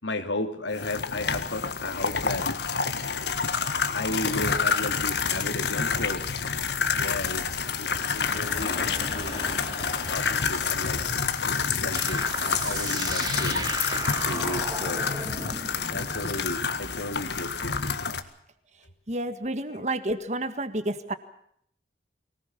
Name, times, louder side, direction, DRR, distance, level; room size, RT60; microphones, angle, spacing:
voice 1, 0.0-2.5 3.9-6.2 7.0-11.0 11.8-13.5 14.2-15.1 15.9-17.8 19.7-19.8, left 2 dB, 85° left, 7 dB, 2.9 m, -34 dB
sound 1, 0.7-18.2, left 5 dB, 70° left, 1.8 m, -28 dB
sound 2, 7.5-14.6, left 1 dB, 30° left, 4.3 m, -43 dB
sound 3, 11.9-17.2, right 3 dB, 20° right, 1.9 m, -35 dB
voice 2, 19.1-21.1, right 1 dB, 40° right, 11 dB, 1.8 m, -30 dB
24.0 x 19.0 x 7.1 m, 0.70 s
head